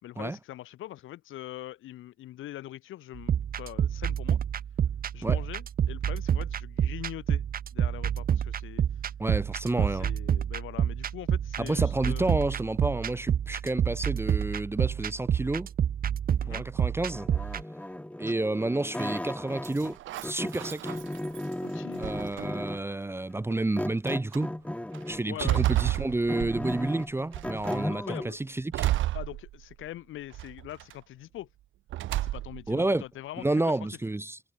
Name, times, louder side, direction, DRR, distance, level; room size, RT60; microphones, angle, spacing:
voice 1, 0.0-4.4 5.1-7.4 7.7-8.8 9.8-12.4 16.4-16.6 18.2-18.3 21.6-22.1 25.3-25.6 27.9-28.4 29.1-31.5 32.2-33.8, left 14 dB, 85° left, 4.9 m, -42 dB
sound 1, 3.2-17.6, right 9 dB, 50° right, 0.8 m, -28 dB
voice 2, 9.2-10.1 11.6-15.7 16.5-17.3 18.2-21.0 22.0-24.5 25.1-28.9 32.7-33.0 33.4-34.4, right 2 dB, 10° right, 0.8 m, -30 dB
sound 2, 17.1-20.0 20.2-22.9 23.8-25.3 25.8-28.3, left 1 dB, 5° left, 4.1 m, -35 dB
sound 3, 19.6-21.5 22.0-22.8 23.5-23.6 24.1-24.4 24.9-26.9 27.3-27.9 28.7-29.9 30.3-30.9 31.9-32.7, right 14 dB, 80° right, 0.9 m, -31 dB
cardioid pair, 90°, 20 cm